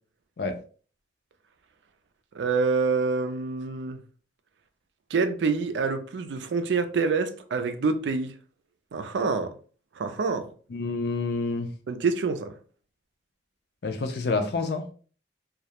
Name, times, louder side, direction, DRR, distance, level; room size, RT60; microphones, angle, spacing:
voice 1, 2.3-4.0 5.1-8.3 8.9-9.6 10.0-10.5 11.9-12.5, right 4 dB, 90° right, 0.4 m, -26 dB
voice 2, 10.7-11.7 13.8-14.8, left 3 dB, 65° left, 0.4 m, -28 dB
2.3 x 2.0 x 2.8 m
head